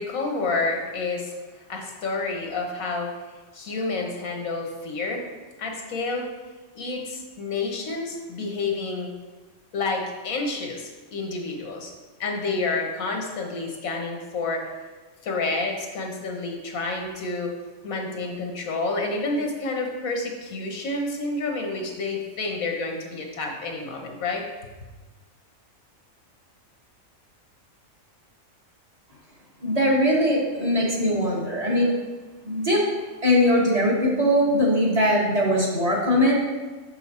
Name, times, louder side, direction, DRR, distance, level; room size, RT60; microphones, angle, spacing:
voice 1, 0.0-3.2 3.5-5.2 5.6-6.3 6.7-9.1 9.7-11.9 12.2-14.7 15.2-17.5 17.8-24.4, left 3 dB, 90° left, 2 dB, 1.5 m, -29 dB
voice 2, 29.6-31.9 32.4-32.8 33.2-36.3, equal, 30° right, -4 dB, 1.4 m, -21 dB
6.4 x 5.7 x 4.2 m, 1.3 s
omnidirectional pair, 1.4 m